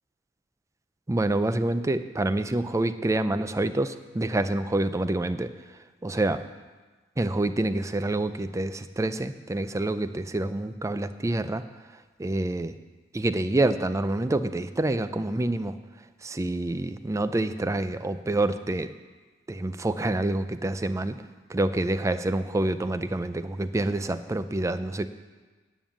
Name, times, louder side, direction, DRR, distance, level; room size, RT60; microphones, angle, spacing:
voice 1, 1.1-5.5 6.0-6.4 7.2-11.6 12.2-12.7 13.1-15.8 16.2-18.9 19.5-21.2 21.5-25.1, right 2 dB, 15° right, 12 dB, 0.4 m, -27 dB
9.1 x 9.0 x 7.2 m, 1.3 s
head